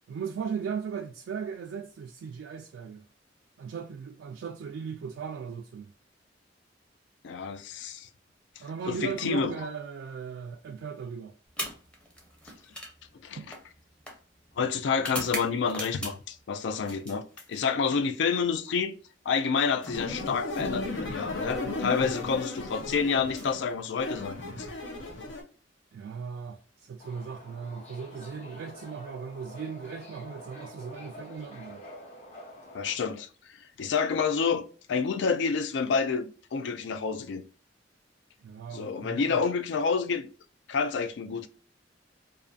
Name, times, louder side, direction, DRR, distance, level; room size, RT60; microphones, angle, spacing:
voice 1, 0.1-3.0 3.6-5.9 8.6-11.3 13.4-13.5 25.9-31.9 38.4-39.4, right 6 dB, 80° right, 0.3 m, -37 dB
voice 2, 7.2-8.1 8.9-9.5 13.2-13.4 14.6-18.9 19.3-24.7 32.7-33.3 33.8-37.4 38.7-40.3 40.7-41.5, left 5 dB, 70° left, 0.3 m, -28 dB
sound 1, 11.5-16.4 16.8-18.0 19.2-21.1 22.1-22.4 23.2-24.4, equal, 5° left, 0.6 m, -42 dB
sound 2, 19.9-25.4, left 2 dB, 90° left, 0.7 m, -35 dB
Subway metro underground, 27.0-32.9, left 1 dB, 35° left, 0.8 m, -47 dB
2.5 x 2.4 x 2.3 m
head